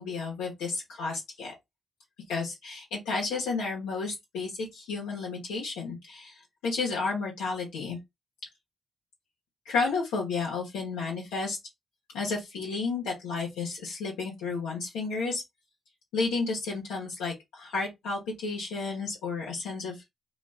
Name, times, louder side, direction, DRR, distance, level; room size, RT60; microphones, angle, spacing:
voice 1, 0.0-1.5 2.3-6.3 6.6-8.0 9.6-11.6 12.1-15.4 16.1-20.0, left 4 dB, 85° left, 1.2 m, -32 dB
2.7 x 2.3 x 4.1 m
hypercardioid pair, 45°, 0 cm